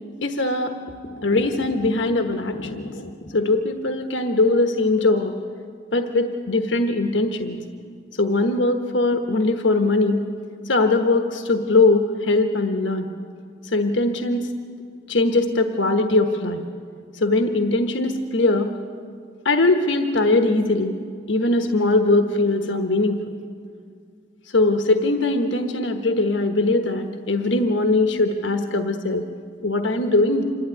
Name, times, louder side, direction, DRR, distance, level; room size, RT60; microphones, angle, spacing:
voice 1, 0.2-0.7 1.1-5.3 5.9-7.6 8.2-10.2 10.7-13.1 13.7-14.5 15.1-16.6 17.2-18.7 19.4-20.9 21.3-23.2 24.5-29.2 29.6-30.4, left 2 dB, 85° left, 5 dB, 1.2 m, -21 dB
26.5 x 12.0 x 9.7 m, 2.2 s
head